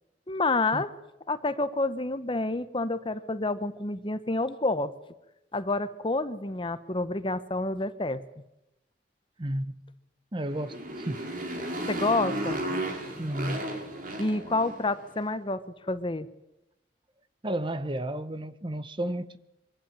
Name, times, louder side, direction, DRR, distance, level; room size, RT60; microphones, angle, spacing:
voice 1, 0.3-0.9 1.3-4.9 5.5-8.2 11.9-12.6 14.2-15.6 15.9-16.3, left 2 dB, 30° left, 1.0 m, -28 dB
voice 2, 9.4-9.8 10.3-11.2 13.2-13.7 17.4-19.4, right 1 dB, 30° right, 0.9 m, -32 dB
Motorcycle, 10.4-15.0, right 1 dB, 50° right, 4.5 m, -34 dB
23.5 x 16.5 x 9.0 m
head